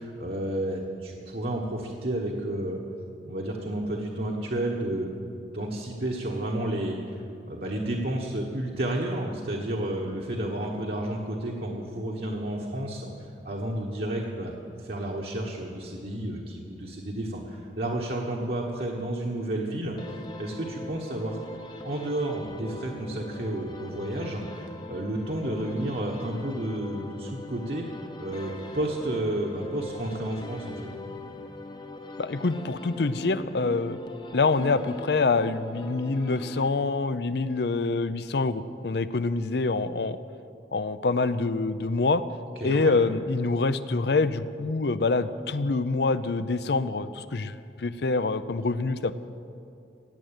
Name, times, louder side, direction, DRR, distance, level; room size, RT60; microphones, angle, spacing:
voice 1, 0.0-2.8 3.2-5.1 5.5-7.2 7.5-13.1 13.4-14.5 14.8-20.0 20.4-21.4 21.8-27.9 28.2-30.9 42.5-42.9, right 1 dB, 55° right, -2 dB, 1.4 m, -31 dB
sound 1, 20.0-37.2, left 1 dB, 25° left, 0.8 m, -41 dB
voice 2, 32.2-34.0 34.3-40.2 40.7-42.2 42.6-49.1, left 3 dB, 65° left, 13 dB, 0.6 m, -26 dB
16.5 x 7.9 x 8.9 m, 2.6 s
head